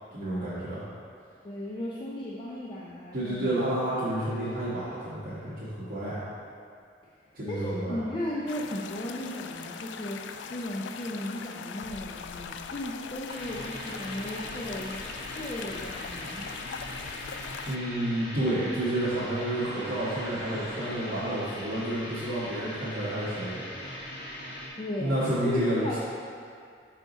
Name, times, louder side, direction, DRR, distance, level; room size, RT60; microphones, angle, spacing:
voice 1, 0.1-0.8 3.1-6.2 7.3-8.0 17.7-23.6 25.0-26.0, right 1 dB, 60° right, -13 dB, 1.3 m, -30 dB
voice 2, 1.4-3.7 7.5-15.0 15.4-16.5 24.8-25.2 25.4-26.0, left 1 dB, 30° left, -5 dB, 0.5 m, -35 dB
sound 1, 8.5-17.8, left 6 dB, 85° left, 0.3 m, -41 dB
sound 2, 13.2-24.7, left 1 dB, 70° left, 1.3 m, -40 dB
sound 3, 19.5-21.9, equal, 20° right, 1.1 m, -45 dB
5.8 x 4.7 x 3.9 m, 2.3 s
head